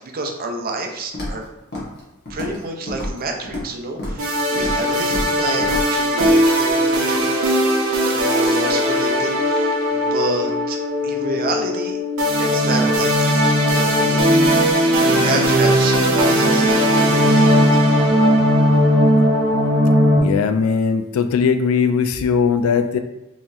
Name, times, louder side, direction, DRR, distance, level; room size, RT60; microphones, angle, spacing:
voice 1, 0.0-1.4 2.3-7.3 8.1-12.0 12.4-13.3 13.7-14.6 14.9-17.6, right 2 dB, 45° right, 2 dB, 0.5 m, -28 dB
Walk footsteps, 1.1-1.4 1.7-2.0 2.3-2.6 2.9-3.7 4.0-4.2 4.5-4.8 5.1-5.3 5.6-5.9 6.2-6.3, left 1 dB, 50° left, 1.1 m, -28 dB
sound 1, 4.2-20.2, equal, 75° right, 0.8 m, -17 dB
voice 2, 20.2-23.0, left 6 dB, 75° left, 8 dB, 0.3 m, -19 dB
3.8 x 2.9 x 2.6 m, 0.95 s
head